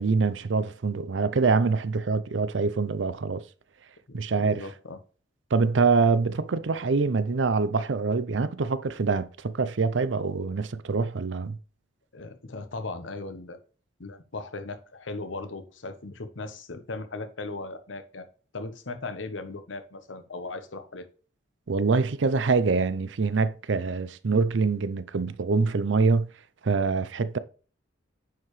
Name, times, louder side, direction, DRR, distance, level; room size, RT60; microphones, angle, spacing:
voice 1, 0.0-3.4 4.1-4.6 5.5-11.6 21.7-26.3 26.6-27.4, right 4 dB, 70° right, 0.6 m, -25 dB
voice 2, 4.1-5.0 12.1-13.6 14.0-18.3 18.5-21.1, left 3 dB, 90° left, 1.0 m, -38 dB
9.2 x 4.7 x 3.2 m
head